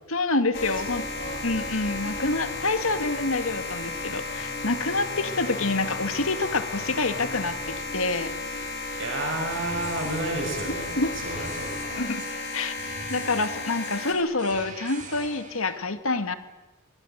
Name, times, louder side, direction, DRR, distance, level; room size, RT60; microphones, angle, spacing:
voice 1, 0.1-1.1 1.4-8.3 11.0-11.1 12.0-12.2 12.5-12.7 13.1-16.3, left 3 dB, 75° left, 9 dB, 2.0 m, -27 dB
sound 1, 0.5-14.1, left 3 dB, 50° left, 3.6 m, -33 dB
voice 2, 9.0-10.9 11.2-11.7, right 1 dB, 60° right, 2 dB, 7.8 m, -31 dB
sound 2, 9.3-15.8, right 3 dB, 35° right, 3.2 m, -43 dB
26.0 x 22.5 x 8.1 m, 1.1 s
head